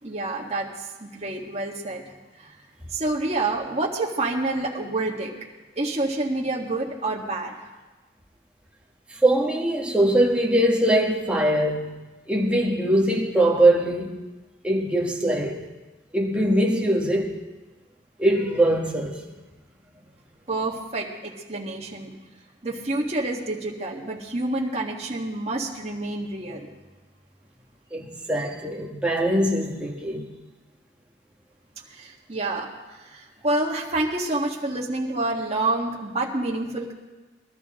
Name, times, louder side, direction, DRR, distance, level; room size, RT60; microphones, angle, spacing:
voice 1, 0.0-2.5 2.9-5.4 5.7-7.7 20.5-22.1 22.6-26.7 31.9-36.9, right 2 dB, 35° right, 1.8 m, -28 dB
voice 2, 9.1-14.2 14.6-15.7 16.1-17.4 18.2-19.2 27.9-30.3, right 1 dB, 5° right, 1.5 m, -22 dB
21.5 x 13.0 x 3.8 m
head